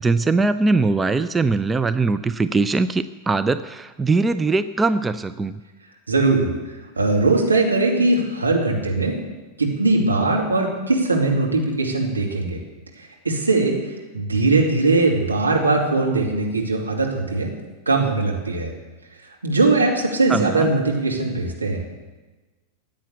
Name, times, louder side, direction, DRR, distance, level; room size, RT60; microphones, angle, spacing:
voice 1, 0.0-5.6 20.3-20.7, right 3 dB, 15° right, 12 dB, 0.5 m, -21 dB
voice 2, 6.1-6.5 7.0-9.2 9.6-12.6 13.0-13.8 14.1-17.5 17.9-18.7 19.4-21.8, right 3 dB, 80° right, -1 dB, 2.7 m, -20 dB
15.0 x 9.1 x 8.4 m, 1.2 s
figure-of-eight pair, 90°, 0 cm